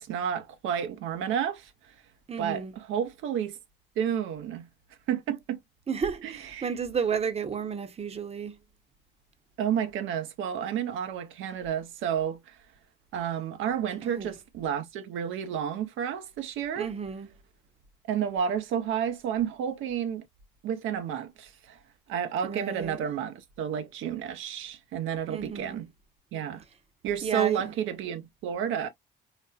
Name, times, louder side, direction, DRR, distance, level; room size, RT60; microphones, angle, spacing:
voice 1, 0.0-1.9 2.4-3.6 4.0-4.7 5.1-5.6 6.2-6.7 9.6-12.6 13.1-16.9 18.1-20.3 20.6-21.8 22.1-25.9 26.3-26.6 27.0-28.9, right 8 dB, 85° right, 0.5 m, -31 dB
voice 2, 2.3-2.7 5.9-8.6 14.0-14.3 16.8-17.3 22.4-23.0 25.3-25.8 27.2-27.7, right 6 dB, 30° right, 0.7 m, -32 dB
4.0 x 2.1 x 2.2 m
cardioid pair, 90°, 20 cm